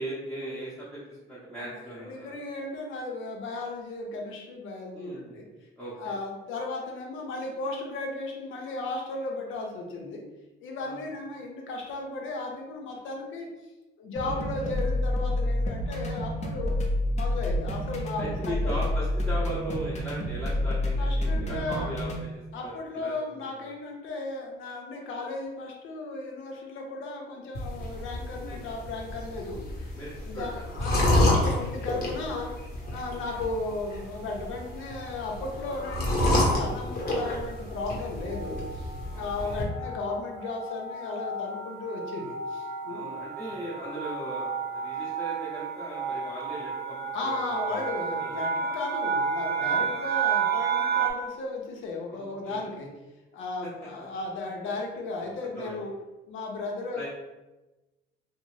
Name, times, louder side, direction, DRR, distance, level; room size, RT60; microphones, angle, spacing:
voice 1, 0.0-2.3 4.9-5.4 5.8-6.2 10.8-11.0 14.2-14.4 18.2-23.7 28.4-28.6 29.9-31.0 33.0-33.2 39.1-40.0 42.9-48.4 49.6-49.8 50.9-51.0 52.1-52.6 54.0-54.1 55.2-55.3 55.6-55.8 56.9-57.1, right 1 dB, 5° left, -10 dB, 0.7 m, -39 dB
voice 2, 1.6-5.5 6.0-10.2 10.6-13.5 14.0-16.8 17.1-18.7 21.0-22.0 22.5-29.9 30.2-32.5 32.8-43.1 47.1-52.9 53.3-55.9 56.3-57.1, left 3 dB, 80° left, 0 dB, 0.6 m, -35 dB
sound 1, 14.2-22.2, left 1 dB, 35° left, 0.5 m, -29 dB
sound 2, 27.6-39.6, left 1 dB, 50° left, 0.9 m, -29 dB
sound 3, 33.0-33.5 34.2-34.6 34.9-35.1 35.3-51.1, right 6 dB, 55° right, 0.4 m, -32 dB
2.6 x 2.0 x 3.1 m, 1.1 s
cardioid pair, 90°, 20 cm